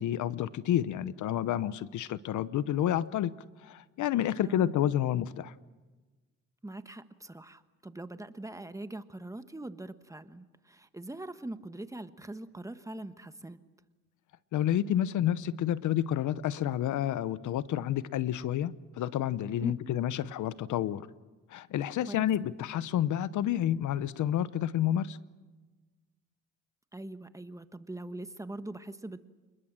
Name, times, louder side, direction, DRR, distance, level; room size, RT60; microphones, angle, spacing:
voice 1, 0.0-3.3 3.6-5.5 14.5-21.1 21.5-25.2, left 11 dB, 75° left, 16 dB, 0.9 m, -29 dB
voice 2, 4.4-4.8 6.6-13.6 19.6-19.9 22.1-22.3 26.9-29.3, right 2 dB, 10° right, 10 dB, 1.2 m, -42 dB
28.5 x 21.0 x 7.5 m, 1.2 s
cardioid pair, 90°, 30 cm